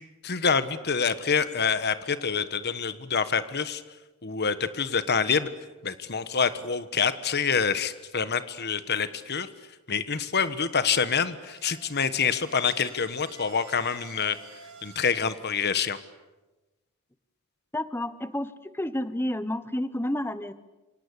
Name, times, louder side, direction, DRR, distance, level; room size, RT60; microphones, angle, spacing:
voice 1, 0.2-3.8 4.2-5.5 5.8-9.5 9.9-14.4 14.8-16.0, left 6 dB, 50° left, 12 dB, 1.4 m, -26 dB
sound 1, 11.2-15.3, right 4 dB, 60° right, 7.1 m, -50 dB
voice 2, 17.7-20.5, left 1 dB, 10° left, 13 dB, 1.1 m, -30 dB
28.0 x 25.0 x 8.4 m, 1.1 s
head